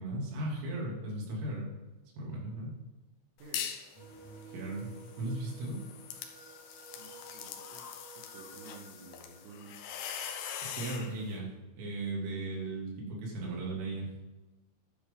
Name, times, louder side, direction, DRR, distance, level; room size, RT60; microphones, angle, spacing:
voice 1, 0.0-1.7 2.2-2.8 4.5-4.9 5.2-5.8 10.6-11.5 11.8-14.1, right 2 dB, 90° right, -3 dB, 5.6 m, -36 dB
sound 1, 3.4-3.9 4.3-11.1, left 8 dB, 80° left, 2.1 m, -42 dB
voice 2, 3.4-3.7 6.9-7.9 8.2-9.8, right 4 dB, 70° right, -1 dB, 3.8 m, -52 dB
sound 2, 3.9-10.1, right 3 dB, 20° right, 3.4 m, -53 dB
12.0 x 8.2 x 3.8 m, 1.2 s
omnidirectional pair, 5.8 m